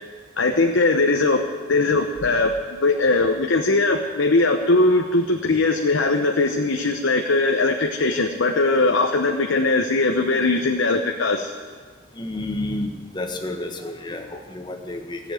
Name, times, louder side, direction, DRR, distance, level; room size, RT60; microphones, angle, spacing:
voice 1, 0.4-1.4 1.7-11.5, left 3 dB, 80° left, 3 dB, 0.9 m, -20 dB
voice 2, 12.1-15.3, left 2 dB, 25° left, 4 dB, 1.3 m, -30 dB
16.0 x 7.4 x 9.0 m, 1.5 s
head